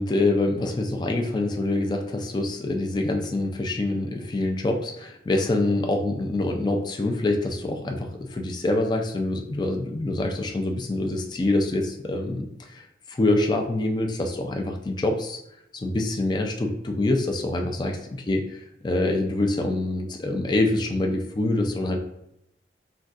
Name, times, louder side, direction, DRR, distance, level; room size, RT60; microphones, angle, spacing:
voice 1, 0.0-15.4 15.7-17.9 18.3-22.0, left 2 dB, 25° left, 3 dB, 0.3 m, -25 dB
3.9 x 2.2 x 2.5 m, 0.78 s
head